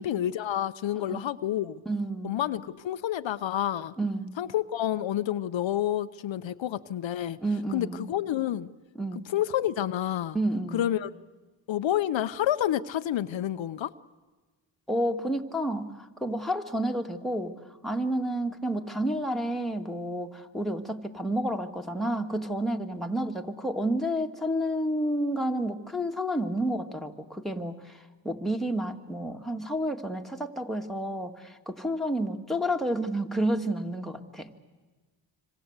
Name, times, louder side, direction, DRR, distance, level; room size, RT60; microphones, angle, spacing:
voice 1, 0.0-1.8 2.2-3.9 4.4-7.4 7.7-8.7 9.3-10.4 10.7-11.1 11.7-13.9, left 11 dB, 75° left, 11 dB, 0.8 m, -29 dB
voice 2, 1.9-2.4 4.0-4.3 7.4-8.1 9.0-9.3 10.3-10.8 14.9-17.6 17.8-34.5, right 1 dB, ahead, 2 dB, 2.1 m, -30 dB
26.0 x 26.0 x 8.1 m, 1.3 s
cardioid pair, 65°, 46 cm